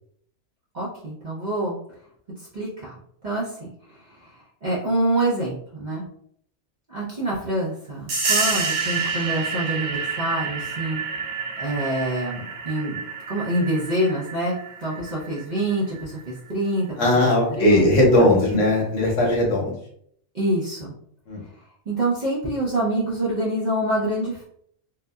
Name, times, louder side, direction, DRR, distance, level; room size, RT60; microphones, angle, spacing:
voice 1, 0.7-1.8 2.5-2.9 3.2-3.7 3.9-4.3 4.6-6.0 6.9-11.0 11.6-13.0 13.3-16.9 17.6-17.9 18.2-18.6 20.3-20.9 21.9-24.4, right 1 dB, 45° right, -7 dB, 0.6 m, -26 dB
sound 1, 8.1-16.4, right 5 dB, 70° right, 0.9 m, -29 dB
voice 2, 17.0-19.7 21.3-21.4, left 1 dB, 65° left, -1 dB, 1.1 m, -18 dB
2.7 x 2.5 x 2.2 m, 0.67 s
omnidirectional pair, 1.4 m